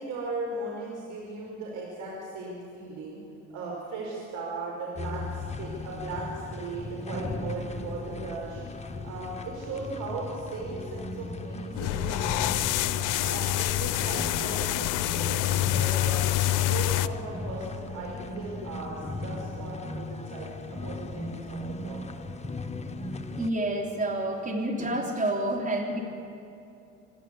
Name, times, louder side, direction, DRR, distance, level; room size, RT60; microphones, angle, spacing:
voice 1, 0.0-3.2 3.5-8.6 9.0-12.3 12.9-16.2 16.5-22.0, right 3 dB, 50° right, -3 dB, 5.4 m, -37 dB
sound 1, 5.0-23.5, left 2 dB, 20° left, 1.2 m, -37 dB
sound 2, 11.8-17.1, left 15 dB, 55° left, 0.7 m, -26 dB
voice 2, 23.4-26.0, right 1 dB, 20° right, 1 dB, 3.4 m, -29 dB
26.0 x 12.0 x 8.5 m, 2.8 s
hypercardioid pair, 75°, 37 cm